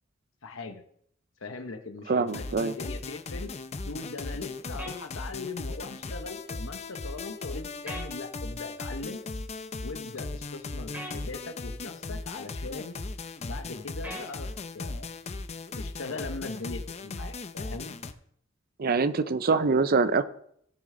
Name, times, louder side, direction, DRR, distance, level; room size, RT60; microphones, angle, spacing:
voice 1, 0.4-0.8 1.4-3.5 3.9-9.2 9.8-13.0 13.4-14.5 14.7-15.2 15.7-18.0, left 3 dB, 80° left, 7 dB, 0.9 m, -40 dB
voice 2, 2.1-2.7 18.8-20.2, right 4 dB, 45° right, 13 dB, 0.5 m, -24 dB
sound 1, 2.3-18.1, left 3 dB, 35° left, 0.6 m, -37 dB
sound 2, 4.8-5.0 7.9-8.1 10.9-11.2 14.0-14.3, equal, 5° right, 2.4 m, -38 dB
17.0 x 6.5 x 3.8 m, 0.68 s
head